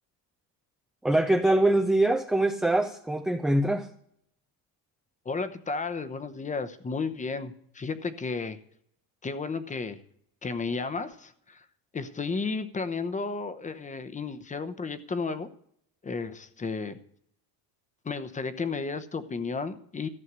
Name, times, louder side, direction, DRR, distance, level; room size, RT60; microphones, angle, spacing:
voice 1, 1.0-3.9, right 1 dB, ahead, 5 dB, 0.4 m, -23 dB
voice 2, 5.2-8.6 9.2-10.0 10.4-11.6 11.9-15.5 16.0-17.0 18.0-20.1, left 4 dB, 15° left, 12 dB, 0.9 m, -33 dB
14.5 x 6.5 x 8.1 m, 0.68 s
cardioid pair, 135°, 44 cm